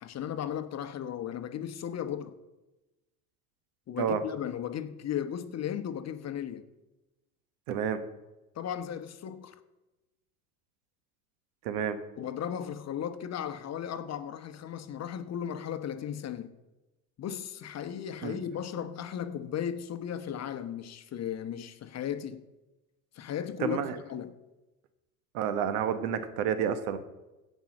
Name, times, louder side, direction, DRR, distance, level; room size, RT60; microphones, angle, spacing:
voice 1, 0.0-2.4 3.9-6.6 8.5-9.6 12.2-16.5 17.2-22.4 23.1-24.4, left 9 dB, 35° left, 1.0 m, -36 dB
voice 2, 7.7-8.0 11.6-12.0 18.2-18.4 23.6-23.9 25.3-27.0, right 8 dB, 70° right, 1.4 m, -29 dB
16.0 x 5.4 x 6.0 m
hypercardioid pair, 85°, 44 cm